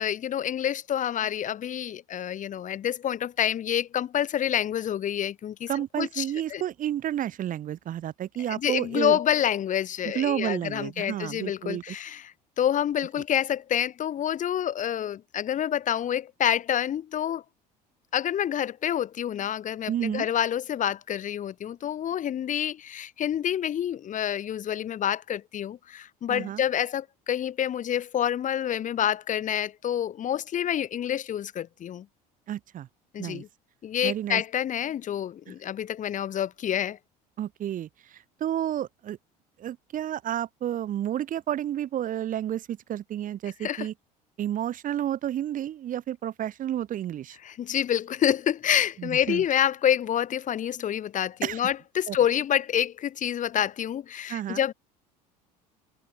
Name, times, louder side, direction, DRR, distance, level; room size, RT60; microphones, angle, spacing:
voice 1, 0.0-5.7 6.0-6.6 8.5-17.4 18.1-32.1 33.1-33.5 33.8-37.0 43.6-43.9 47.4-54.7, left 10 dB, 40° left, 1.1 m, -28 dB
voice 2, 5.7-9.2 10.0-12.0 19.9-20.3 26.3-26.6 32.5-32.9 33.2-33.4 34.0-34.4 35.5-35.6 37.4-39.2 39.6-43.9 44.4-47.4 49.0-49.4 51.4-51.6 52.1-52.2 54.3-54.6, right 11 dB, 40° right, 0.9 m, -31 dB
hypercardioid pair, 65°, 21 cm